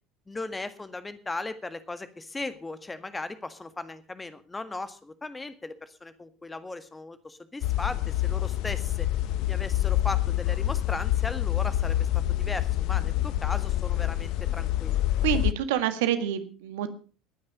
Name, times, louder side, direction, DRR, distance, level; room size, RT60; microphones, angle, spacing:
voice 1, 0.3-9.1 9.5-12.1 12.4-15.1, left 2 dB, 15° left, 12 dB, 1.8 m, -37 dB
sound 1, 7.6-15.5, left 14 dB, 55° left, 0.7 m, -27 dB
voice 2, 15.2-16.9, right 10 dB, 70° right, 10 dB, 1.7 m, -27 dB
20.0 x 9.7 x 5.3 m, 0.37 s
figure-of-eight pair, 65°, 0 cm